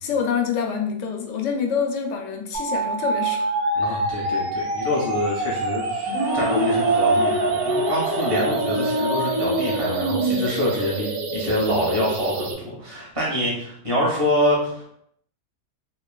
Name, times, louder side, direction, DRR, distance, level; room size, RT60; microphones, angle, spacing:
voice 1, 0.0-3.5 3.9-4.0, left 6 dB, 70° left, 2 dB, 0.9 m, -26 dB
sound 1, 2.5-12.5, right 2 dB, 65° right, 0.6 m, -27 dB
voice 2, 3.7-14.9, left 1 dB, 25° right, -6 dB, 1.1 m, -26 dB
sound 2, 6.0-10.4, right 1 dB, 90° right, 1.4 m, -24 dB
3.0 x 2.8 x 2.2 m, 0.70 s
omnidirectional pair, 1.4 m